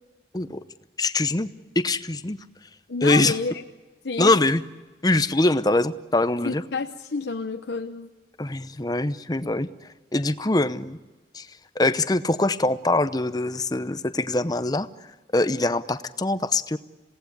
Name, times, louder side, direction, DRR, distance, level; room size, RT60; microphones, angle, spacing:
voice 1, 1.0-1.5 1.8-2.4 3.0-3.4 4.2-4.6 5.0-6.6 8.4-9.7 10.1-11.0 11.3-11.5 11.8-14.9 15.3-16.8, left 2 dB, 20° left, 13 dB, 0.8 m, -23 dB
voice 2, 2.9-3.5 4.0-4.3 6.4-8.1, left 4 dB, 80° left, 5 dB, 0.9 m, -29 dB
27.5 x 17.5 x 8.6 m, 1.2 s
head